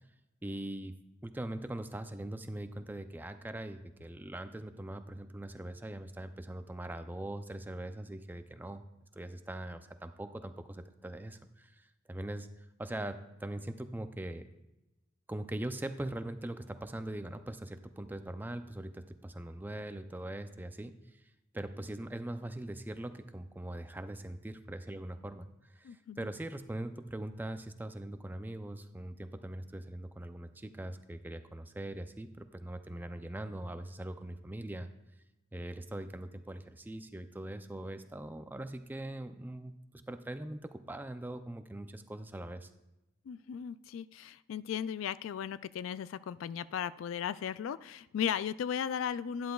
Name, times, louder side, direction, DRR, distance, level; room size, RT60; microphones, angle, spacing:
voice 1, 0.4-0.9 1.2-8.8 9.1-12.5 12.8-14.4 15.3-34.9 35.5-42.7, right 1 dB, 10° right, 9 dB, 0.4 m, -41 dB
voice 2, 25.8-26.3 43.3-49.5, left 8 dB, 85° left, 15 dB, 0.3 m, -36 dB
11.5 x 10.5 x 2.3 m, 0.95 s
head